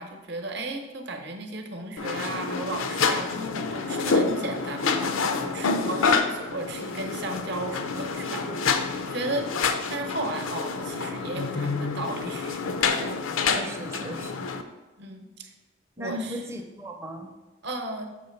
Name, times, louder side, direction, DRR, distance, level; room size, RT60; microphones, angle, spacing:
voice 1, 0.0-8.7 9.1-13.1 15.0-15.5 16.0-16.4 17.6-18.1, right 2 dB, 55° right, 4 dB, 0.8 m, -35 dB
sound 1, 2.0-14.6, left 4 dB, 80° left, 0.5 m, -28 dB
voice 2, 8.2-8.7 13.5-14.5 16.0-17.3, equal, 15° right, 3 dB, 0.5 m, -37 dB
6.7 x 3.4 x 5.8 m, 1.1 s
head